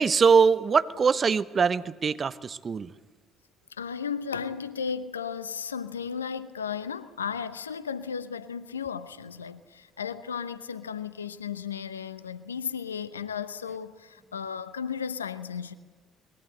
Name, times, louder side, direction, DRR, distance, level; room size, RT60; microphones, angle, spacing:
voice 1, 0.0-2.9, right 5 dB, 40° right, 0.9 m, -22 dB
voice 2, 3.8-15.7, left 7 dB, 90° left, 0.8 m, -34 dB
23.5 x 21.0 x 8.0 m
hypercardioid pair, 50°, 0 cm